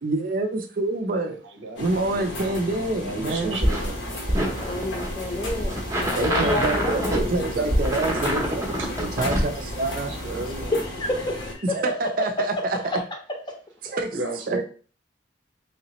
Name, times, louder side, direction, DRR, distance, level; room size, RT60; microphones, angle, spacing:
voice 1, 0.0-1.4 1.8-3.7 6.2-10.2 11.7-12.5 13.8-14.1 14.5-14.6, right 2 dB, 50° right, 0.5 m, -27 dB
voice 2, 1.4-1.8 3.0-4.0 6.4-6.5 7.1-7.7 8.1-8.9 10.1-10.7 14.1-14.6, right 2 dB, 85° right, 0.8 m, -33 dB
sound 1, 1.8-11.5, left 1 dB, 85° left, 1.0 m, -35 dB
sound 2, 3.6-10.7, equal, 15° right, 0.7 m, -26 dB
voice 3, 4.4-7.3 10.4-11.8 12.4-12.5 12.7-13.0, left 1 dB, 25° left, 0.7 m, -29 dB
3.2 x 2.9 x 2.9 m
head